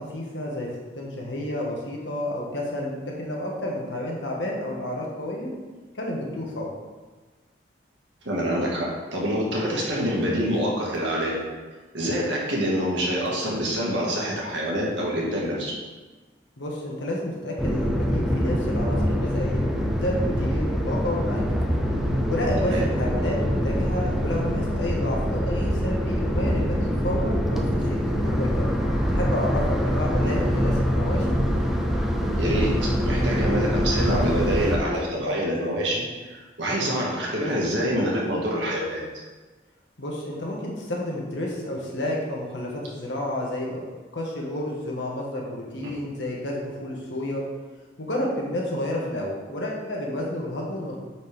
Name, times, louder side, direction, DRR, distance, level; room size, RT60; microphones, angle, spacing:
voice 1, 0.0-5.5 5.9-6.7 16.6-19.6 19.9-21.4 22.3-28.7 29.1-31.3 40.0-43.8 44.1-47.4 48.0-51.0, left 1 dB, 80° left, -2 dB, 1.6 m, -30 dB
voice 2, 8.2-11.3 11.9-15.7 22.6-22.8 30.2-30.4 32.4-39.0 45.8-45.9, equal, 80° right, -4 dB, 1.9 m, -26 dB
sound 1, 17.6-34.8, equal, ahead, 0.6 m, -24 dB
9.2 x 4.5 x 3.5 m, 1.3 s
head